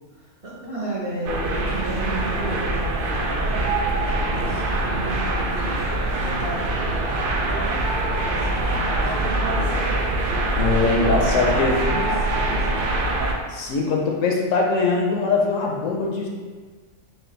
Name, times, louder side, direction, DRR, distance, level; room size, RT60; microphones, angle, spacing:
voice 1, 0.1-5.8 6.2-10.0 10.8-13.0, right 1 dB, 30° right, -8 dB, 0.6 m, -34 dB
sound 1, 1.3-13.3, right 2 dB, 80° right, 0.4 m, -24 dB
voice 2, 10.5-11.8 13.5-16.3, left 3 dB, 70° left, -1 dB, 0.9 m, -22 dB
4.1 x 2.3 x 3.8 m, 1.5 s
omnidirectional pair, 1.5 m